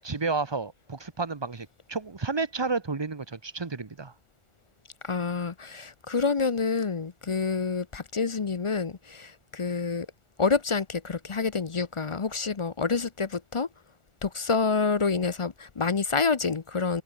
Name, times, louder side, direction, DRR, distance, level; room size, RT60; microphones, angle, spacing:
voice 1, 0.0-4.1, right 4 dB, 25° right, 0.8 m, -31 dB
voice 2, 5.0-10.1 10.4-13.7 14.2-17.0, left 4 dB, 35° left, 0.6 m, -28 dB
omnidirectional pair, 1.2 m